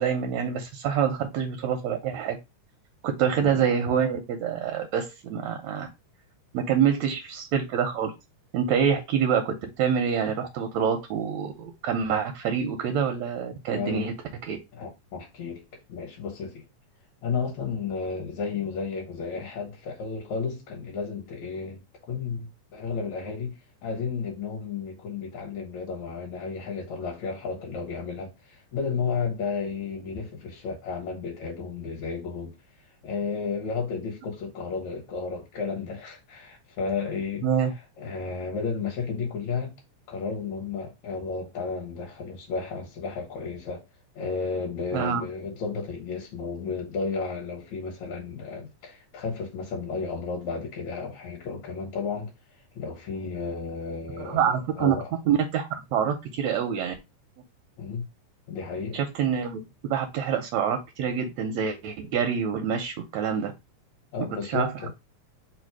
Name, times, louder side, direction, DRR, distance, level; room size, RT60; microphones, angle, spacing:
voice 1, 0.0-2.4 3.0-5.9 6.5-8.1 8.5-14.1 14.5-14.6 37.4-37.7 44.9-45.2 54.2-55.0 55.3-56.9 58.9-63.5 64.5-64.9, right 7 dB, 75° right, 1.6 m, -26 dB
voice 2, 13.7-14.1 14.7-15.6 15.9-16.6 17.2-21.8 22.1-22.5 22.7-23.6 23.8-32.5 33.0-37.5 38.0-39.7 40.1-43.8 44.2-52.3 52.8-55.1 57.8-58.1 58.5-59.0 64.1-64.9, left 5 dB, 65° left, 2.3 m, -32 dB
5.0 x 2.3 x 4.6 m
omnidirectional pair, 3.7 m